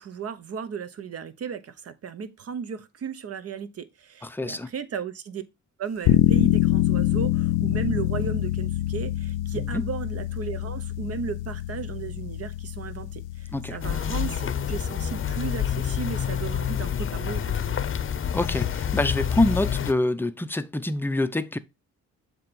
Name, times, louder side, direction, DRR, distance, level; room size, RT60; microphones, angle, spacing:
voice 1, 0.0-5.4 5.8-17.8, right 6 dB, 50° right, 1.0 m, -35 dB
voice 2, 4.2-4.7 9.5-9.8 13.5-13.8 18.3-21.6, left 2 dB, 5° left, 0.6 m, -26 dB
sound 1, 6.0-16.8, left 15 dB, 90° left, 0.5 m, -26 dB
sound 2, 13.8-19.9, left 8 dB, 40° left, 0.8 m, -27 dB
7.4 x 3.0 x 5.3 m
cardioid pair, 90°, 30 cm